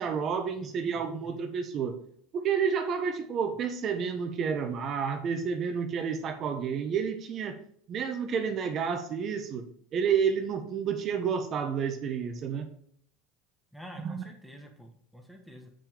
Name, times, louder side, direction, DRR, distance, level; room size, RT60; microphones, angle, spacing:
voice 1, 0.0-1.9 2.3-7.6 7.9-9.7 9.9-12.7 14.0-14.2, right 6 dB, 45° right, 7 dB, 1.1 m, -30 dB
voice 2, 0.6-1.5 13.7-15.7, equal, ahead, 2 dB, 1.3 m, -49 dB
7.0 x 5.6 x 3.5 m, 0.64 s
supercardioid pair, 100°, 0 cm